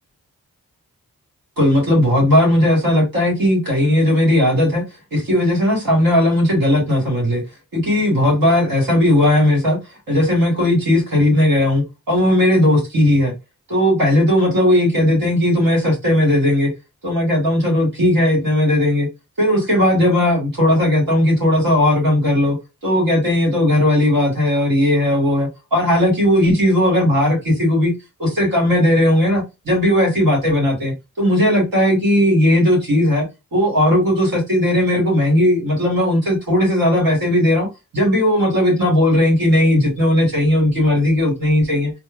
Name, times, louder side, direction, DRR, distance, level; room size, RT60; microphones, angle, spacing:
voice 1, 1.6-4.8 5.1-7.4 7.7-9.8 10.1-13.3 13.7-16.7 17.0-19.1 19.4-22.6 22.8-27.9 28.2-33.3 33.5-37.7 37.9-41.9, left 1 dB, 75° right, 1.4 m, -16 dB
2.9 x 2.2 x 2.4 m
cardioid pair, 40°, 35 cm